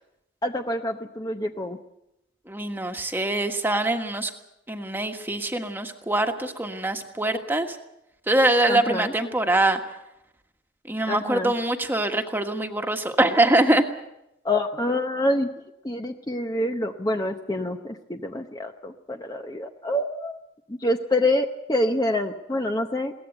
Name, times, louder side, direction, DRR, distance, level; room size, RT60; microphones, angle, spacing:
voice 1, 0.4-1.8 8.7-9.1 11.0-11.5 14.4-15.5 15.8-20.4 20.7-23.1, left 1 dB, 20° left, 5 dB, 0.8 m, -26 dB
voice 2, 2.5-4.3 4.7-7.8 8.3-9.8 10.9-13.8, right 2 dB, 10° right, 5 dB, 1.5 m, -23 dB
22.0 x 18.0 x 7.9 m, 0.86 s
head